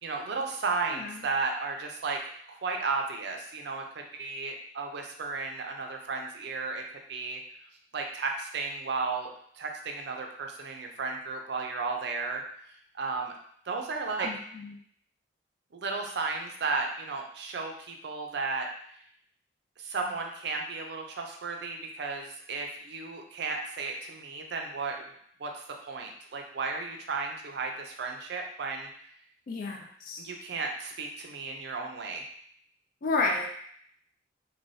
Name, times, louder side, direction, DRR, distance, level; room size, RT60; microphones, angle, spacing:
voice 1, 0.0-2.2 2.5-6.8 7.1-7.4 7.9-12.4 13.0-13.4 13.7-14.3 15.7-18.7 19.8-25.0 25.4-28.9 30.2-32.3, right 4 dB, 65° right, 2 dB, 0.4 m, -34 dB
voice 2, 0.9-1.2 14.2-14.8 29.5-30.3 33.0-33.5, left 3 dB, 50° left, 1 dB, 0.3 m, -31 dB
3.1 x 2.2 x 2.6 m, 0.64 s
head